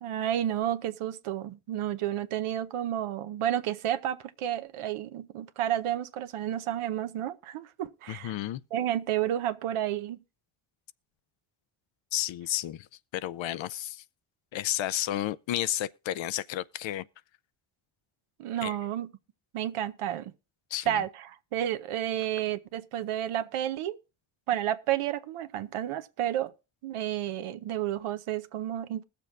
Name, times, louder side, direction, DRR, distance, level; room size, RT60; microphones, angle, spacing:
voice 1, 0.0-8.3 8.7-10.2 18.4-19.1 19.5-20.3 20.9-24.0 24.5-26.5 26.8-29.0, right 11 dB, 85° right, 0.8 m, -31 dB
voice 2, 8.1-8.6 12.1-12.9 13.1-14.0 14.5-17.1 18.6-18.8 20.7-21.1, left 13 dB, 65° left, 0.6 m, -32 dB
20.5 x 6.9 x 2.4 m
supercardioid pair, 50°, 50 cm